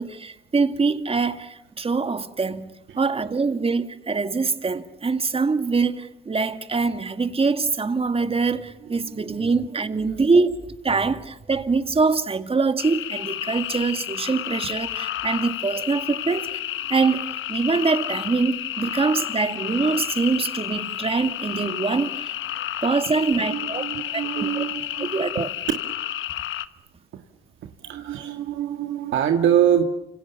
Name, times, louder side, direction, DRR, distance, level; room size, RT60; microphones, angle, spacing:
voice 1, 0.0-16.6 16.9-22.3 22.8-23.8 24.1-24.6 25.1-25.5, right 4 dB, 30° right, 2.1 m, -24 dB
sound 1, 12.8-26.7, left 12 dB, 85° left, 1.2 m, -31 dB
voice 2, 23.1-25.1 27.1-27.2 27.8-29.8, right 9 dB, 75° right, 1.8 m, -24 dB
29.0 x 26.5 x 7.0 m
cardioid pair, 90°, 20 cm